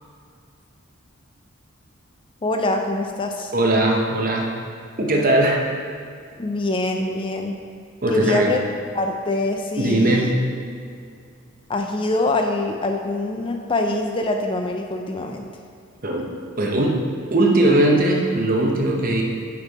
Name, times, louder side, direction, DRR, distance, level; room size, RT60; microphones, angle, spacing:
voice 1, 2.4-3.5 6.4-7.6 8.1-8.6 8.9-10.3 11.7-15.5, left 2 dB, 25° left, 4 dB, 0.4 m, -24 dB
voice 2, 3.5-4.5 5.0-5.6 8.0-8.5 9.8-10.4 16.0-16.3 16.6-17.0 17.3-19.2, right 1 dB, 40° right, 0 dB, 0.9 m, -19 dB
8.1 x 5.3 x 4.1 m, 2.3 s
head